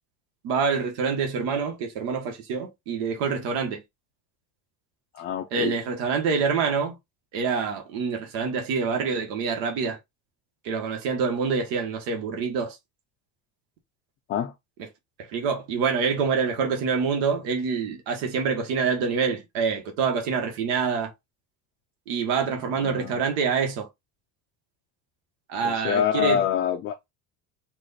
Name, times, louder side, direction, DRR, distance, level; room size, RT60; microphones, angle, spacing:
voice 1, 0.4-3.8 5.5-6.9 7.3-10.0 10.6-12.8 15.3-21.1 22.1-23.9 25.5-26.4, right 5 dB, 85° right, 1.5 m, -26 dB
voice 2, 5.1-5.7 14.3-14.5 22.6-23.2 25.6-27.0, left 9 dB, 30° left, 0.4 m, -26 dB
4.6 x 2.5 x 4.1 m
cardioid pair, 175°, 37 cm